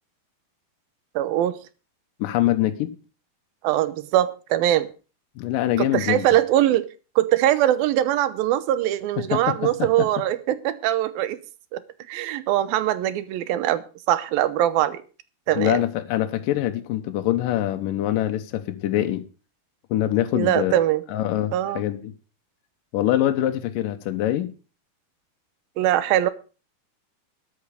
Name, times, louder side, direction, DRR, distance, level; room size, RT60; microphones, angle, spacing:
voice 1, 1.2-1.6 3.6-4.9 5.8-6.9 7.2-11.4 11.7-11.8 12.1-15.0 15.5-15.8 20.3-21.0 21.5-21.8 25.8-26.3, right 13 dB, 80° right, 2.6 m, -22 dB
voice 2, 2.2-2.9 5.4-6.3 9.3-10.1 15.6-19.2 19.9-20.7 21.1-22.1 22.9-24.5, left 13 dB, 75° left, 2.3 m, -24 dB
13.0 x 10.5 x 5.1 m
omnidirectional pair, 4.4 m